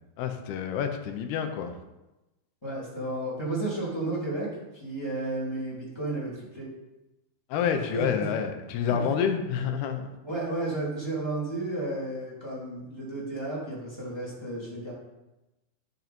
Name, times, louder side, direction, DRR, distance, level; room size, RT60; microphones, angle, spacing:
voice 1, 0.2-1.7 7.5-10.0, left 7 dB, 75° left, 6 dB, 2.8 m, -28 dB
voice 2, 2.6-6.7 7.9-8.3 8.9-9.1 10.2-14.9, right 2 dB, 5° left, -6 dB, 2.4 m, -33 dB
13.0 x 6.6 x 4.4 m, 1.0 s
omnidirectional pair, 4.9 m